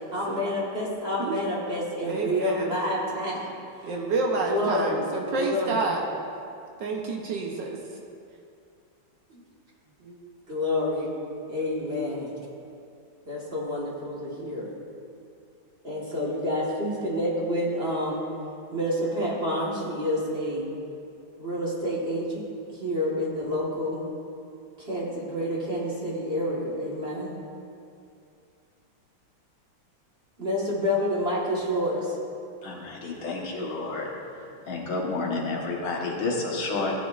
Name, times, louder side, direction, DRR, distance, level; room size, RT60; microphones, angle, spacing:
voice 1, 0.0-5.1 5.4-5.8 9.3-9.4 10.5-11.1 11.5-12.4 13.2-14.7 15.8-18.2 18.7-20.7 21.4-22.4 22.7-24.0 24.8-27.4 30.4-32.2, left 1 dB, 35° right, -5 dB, 1.6 m, -28 dB
voice 2, 2.0-2.7 3.8-6.0 6.8-7.8 10.0-10.2, right 3 dB, 70° right, 0 dB, 1.4 m, -29 dB
voice 3, 32.6-34.1 34.7-36.9, left 3 dB, 80° left, -3 dB, 2.1 m, -30 dB
15.0 x 9.3 x 2.4 m, 2.5 s
omnidirectional pair, 2.2 m